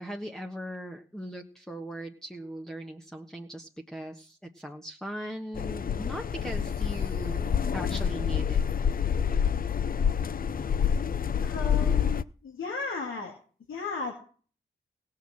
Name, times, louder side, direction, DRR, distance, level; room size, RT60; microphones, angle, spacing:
voice 1, 0.0-8.6, right 1 dB, 5° left, 1 dB, 1.4 m, -39 dB
sound 1, 5.5-12.2, left 7 dB, 45° left, 0.5 m, -27 dB
voice 2, 11.4-13.4 13.7-14.1, left 4 dB, 80° left, -2 dB, 2.3 m, -35 dB
16.5 x 5.7 x 7.7 m, 0.43 s
cardioid pair, 50°, 21 cm